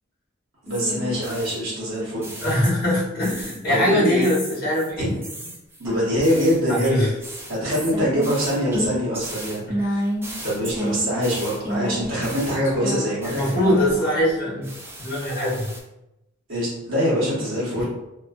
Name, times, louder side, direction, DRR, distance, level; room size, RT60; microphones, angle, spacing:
voice 1, 0.6-2.3 3.7-4.3 5.0-5.1 5.8-7.1 7.5-10.0 10.4-13.8 16.5-17.8, equal, 65° right, -7 dB, 1.0 m, -24 dB
sound 1, 0.7-3.0 3.2-3.8 4.2-14.3 14.6-15.8, equal, 10° right, 0.3 m, -32 dB
voice 2, 2.4-5.1 6.7-7.1 9.7-9.8 13.2-14.7 15.0-15.7 17.8-17.9, left 1 dB, 50° left, -6 dB, 1.0 m, -22 dB
2.5 x 2.4 x 2.4 m, 0.91 s
head